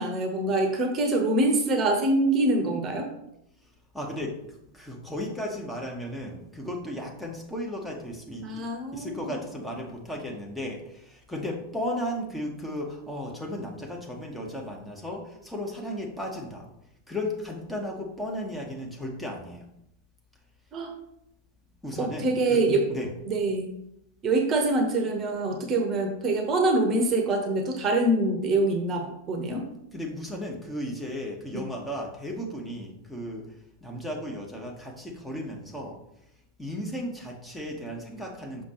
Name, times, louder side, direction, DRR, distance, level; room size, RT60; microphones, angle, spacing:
voice 1, 0.0-3.1 8.4-9.3 20.7-20.9 22.0-22.8 23.3-23.7 24.2-29.6 31.5-31.6, right 2 dB, 30° right, 4 dB, 1.0 m, -25 dB
voice 2, 3.9-4.4 4.7-16.7 17.1-19.7 21.8-23.1 29.9-33.5 33.8-36.0 36.6-38.6, left 1 dB, 5° left, -1 dB, 1.2 m, -35 dB
6.4 x 6.0 x 3.0 m, 0.80 s
figure-of-eight pair, 90°, 0 cm